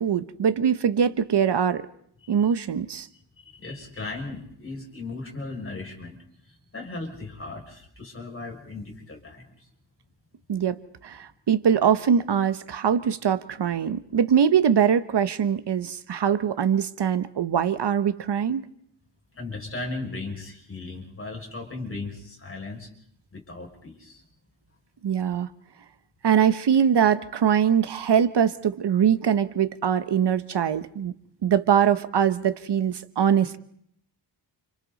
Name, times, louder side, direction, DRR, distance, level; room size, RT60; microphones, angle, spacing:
voice 1, 0.0-1.9 2.3-3.1 10.5-18.7 25.0-25.5 26.2-31.1 31.4-33.6, right 8 dB, 65° right, 12 dB, 1.1 m, -22 dB
voice 2, 2.2-2.5 3.4-6.2 6.7-9.7 19.3-22.9 23.3-24.2, left 3 dB, 30° left, 1 dB, 6.1 m, -37 dB
29.5 x 29.5 x 4.1 m, 0.68 s
wide cardioid pair, 170°, 44 cm